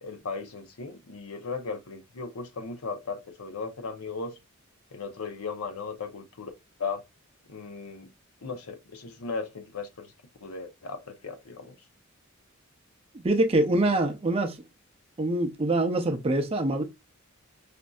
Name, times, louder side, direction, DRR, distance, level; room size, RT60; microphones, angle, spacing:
voice 1, 0.0-4.3 4.9-6.5 6.8-7.0 7.5-8.1 8.4-10.1 10.4-11.8, left 4 dB, 90° left, 0.7 m, -36 dB
voice 2, 13.1-14.6 15.2-16.8, right 2 dB, 25° right, 0.5 m, -24 dB
5.1 x 2.6 x 2.3 m
head